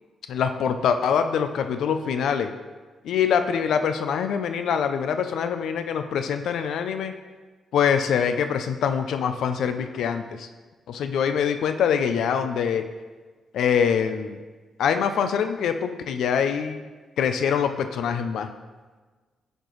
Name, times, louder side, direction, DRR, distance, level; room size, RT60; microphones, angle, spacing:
voice 1, 0.3-2.5 3.0-7.1 7.7-10.5 10.9-12.9 13.5-14.4 14.8-16.8 17.2-18.5, left 7 dB, 80° left, 8 dB, 0.4 m, -24 dB
10.0 x 4.4 x 3.1 m, 1.4 s
cardioid pair, 120°, 0 cm